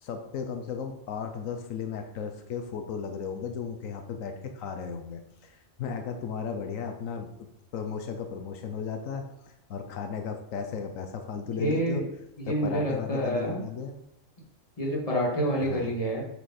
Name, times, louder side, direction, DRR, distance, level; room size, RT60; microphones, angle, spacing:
voice 1, 0.0-12.1 12.5-14.0 15.6-15.9, left 6 dB, 90° left, 6 dB, 1.2 m, -35 dB
voice 2, 11.6-12.1 12.4-13.6 14.8-16.2, right 1 dB, 25° left, -3 dB, 2.0 m, -28 dB
7.8 x 5.0 x 4.2 m, 0.83 s
omnidirectional pair, 1.3 m